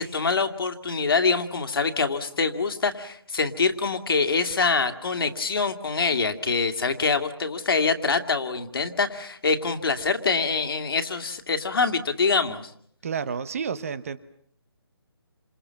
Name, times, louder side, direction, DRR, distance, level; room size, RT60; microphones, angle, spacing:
voice 1, 0.0-12.6, left 4 dB, 60° left, 7 dB, 2.4 m, -25 dB
voice 2, 13.0-14.2, right 6 dB, 35° right, 14 dB, 1.1 m, -30 dB
30.0 x 27.5 x 5.9 m, 0.63 s
hypercardioid pair, 170°, 14 cm